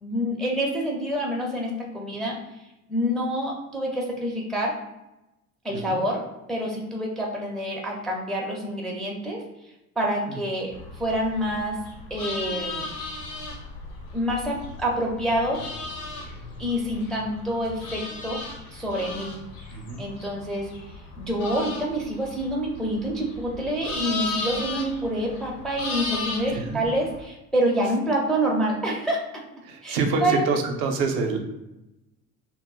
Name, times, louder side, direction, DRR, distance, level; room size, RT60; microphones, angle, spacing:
voice 1, 0.0-2.4 2.9-4.7 5.6-6.2 6.5-9.4 10.0-11.8 12.1-12.9 14.1-15.7 16.6-18.4 18.7-19.3 20.0-20.7 21.2-29.3 29.8-30.5, equal, ahead, -2 dB, 0.4 m, -27 dB
sound 1, 10.7-27.2, left 3 dB, 75° left, 0.8 m, -36 dB
voice 2, 19.7-20.0 26.5-26.8 29.6-31.4, right 4 dB, 65° right, 3 dB, 0.6 m, -27 dB
2.1 x 2.0 x 3.6 m, 0.95 s
hypercardioid pair, 60°, 44 cm